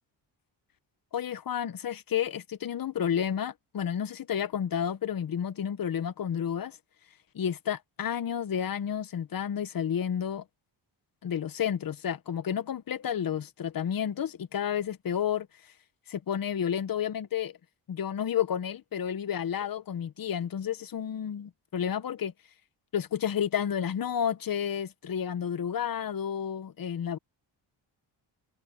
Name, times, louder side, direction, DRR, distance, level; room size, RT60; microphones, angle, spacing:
voice 1, 1.1-6.8 7.3-10.4 11.2-15.5 16.1-17.5 17.9-22.3 22.9-27.2, left 8 dB, 50° left, 1.0 m, -31 dB
cardioid pair, 120°, 45 cm